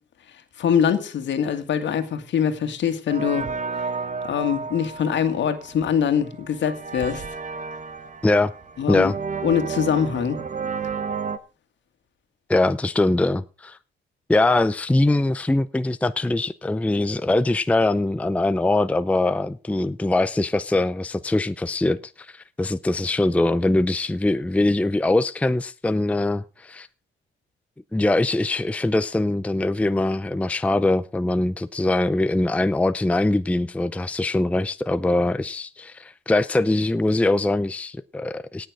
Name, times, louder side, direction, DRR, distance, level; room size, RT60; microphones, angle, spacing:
voice 1, 0.6-3.5 4.2-7.2 8.8-9.1 9.4-10.4, left 8 dB, 65° left, 2.0 m, -23 dB
sound 1, 3.1-11.4, right 5 dB, 40° right, 1.2 m, -32 dB
voice 2, 12.5-13.8 14.3-26.9 27.9-38.7, left 2 dB, 5° left, 0.5 m, -22 dB
18.0 x 6.6 x 4.9 m
cardioid pair, 90°, 20 cm